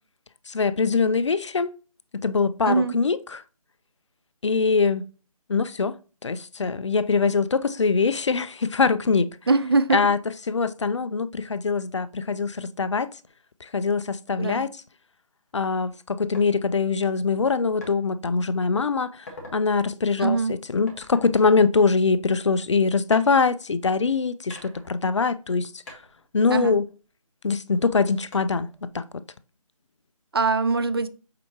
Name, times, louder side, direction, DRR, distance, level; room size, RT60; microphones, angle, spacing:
voice 1, 0.5-1.7 2.2-3.4 4.4-5.1 5.5-9.3 9.9-10.2 10.5-13.1 13.6-14.7 15.5-19.3 19.5-26.0 26.3-26.9 27.4-29.2, left 4 dB, 50° left, 0.4 m, -23 dB
voice 2, 9.5-10.0 14.4-14.6 20.2-20.5 26.5-26.8 30.3-31.1, right 3 dB, 40° right, 0.4 m, -22 dB
sound 1, 16.3-16.5 17.8-18.0 18.5-18.7 19.1-19.6 20.9-22.4 23.1-24.0 24.5-25.6 25.9-27.5 28.3-28.9, left 2 dB, 25° left, 1.4 m, -46 dB
7.5 x 4.4 x 2.9 m
figure-of-eight pair, 165°, 19 cm